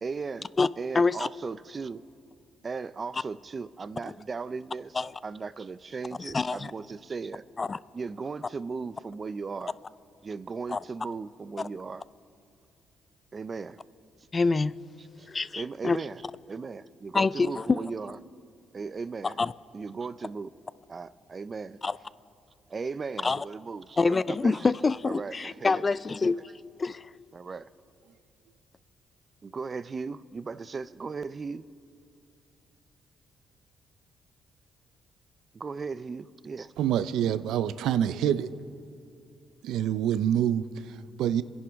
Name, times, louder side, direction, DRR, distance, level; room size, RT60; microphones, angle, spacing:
voice 1, 0.0-0.5 0.8-2.0 2.6-5.0 5.2-7.4 7.9-9.7 10.2-12.0 13.3-13.8 15.2-15.3 15.5-16.2 16.5-18.2 18.7-19.4 19.7-20.5 20.9-21.8 22.7-24.7 25.0-25.8 27.3-27.7 29.4-31.6 35.5-36.7, right 4 dB, 35° right, 15 dB, 0.5 m, -37 dB
voice 2, 0.9-1.3 4.1-4.2 4.9-5.1 6.2-6.7 7.6-7.8 10.7-10.8 14.3-14.8 15.3-16.0 17.1-17.8 19.2-19.5 21.8-22.0 23.2-23.4 24.0-26.4 26.8-27.1, left 4 dB, 30° left, 18 dB, 0.4 m, -26 dB
voice 3, 36.8-38.5 39.6-41.4, right 10 dB, 85° right, 14 dB, 0.5 m, -26 dB
29.0 x 11.0 x 3.5 m, 2.6 s
cardioid pair, 90°, 0 cm